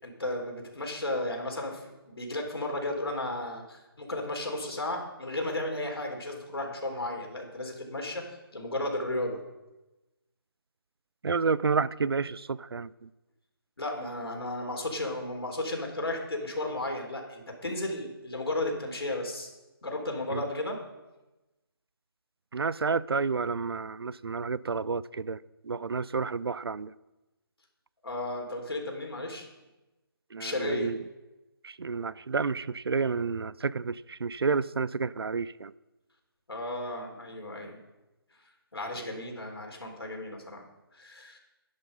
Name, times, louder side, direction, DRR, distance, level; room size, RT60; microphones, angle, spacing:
voice 1, 0.0-9.4 13.8-19.5 19.8-20.8 28.0-29.5 30.4-30.9 36.5-37.8 38.7-40.6 40.9-41.4, left 1 dB, 90° left, 2 dB, 4.0 m, -34 dB
voice 2, 11.2-13.1 20.3-20.4 22.5-26.9 30.3-31.0 31.6-35.7, right 4 dB, 75° right, 20 dB, 0.5 m, -30 dB
12.0 x 10.5 x 5.5 m, 1.0 s
figure-of-eight pair, 170°, 13 cm